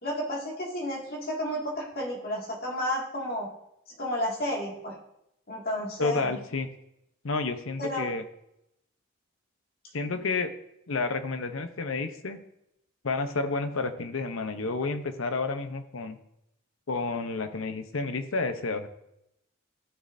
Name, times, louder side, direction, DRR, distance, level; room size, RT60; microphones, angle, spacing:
voice 1, 0.0-3.5 4.0-5.0 5.5-6.3 7.8-8.1, equal, 50° left, -2 dB, 2.2 m, -31 dB
voice 2, 6.0-6.7 7.2-8.2 9.9-10.5 10.9-12.4 13.0-16.2 16.9-18.9, left 3 dB, 80° left, 9 dB, 0.8 m, -30 dB
14.5 x 6.5 x 2.7 m, 0.81 s
head